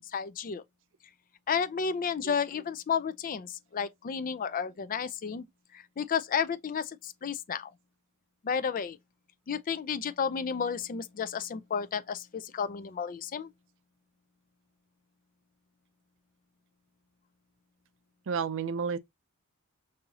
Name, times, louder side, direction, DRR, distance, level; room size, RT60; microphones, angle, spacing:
voice 1, 0.1-0.6 1.5-5.4 6.0-7.7 8.4-9.0 9.5-13.5, left 6 dB, 40° left, 0.4 m, -32 dB
voice 2, 18.3-19.0, right 6 dB, 60° right, 0.5 m, -31 dB
5.4 x 2.7 x 2.8 m
head